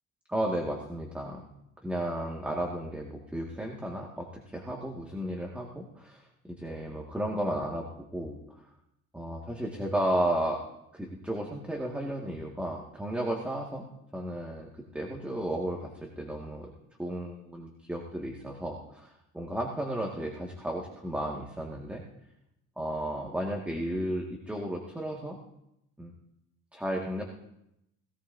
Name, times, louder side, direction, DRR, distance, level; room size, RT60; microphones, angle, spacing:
voice 1, 0.3-1.4 1.8-8.4 9.1-10.6 10.9-16.7 17.0-22.0 22.8-25.4 26.0-26.1 26.7-27.2, right 1 dB, 5° right, -1 dB, 1.9 m, -33 dB
18.5 x 18.0 x 2.7 m, 0.81 s
cardioid pair, 105°, 32 cm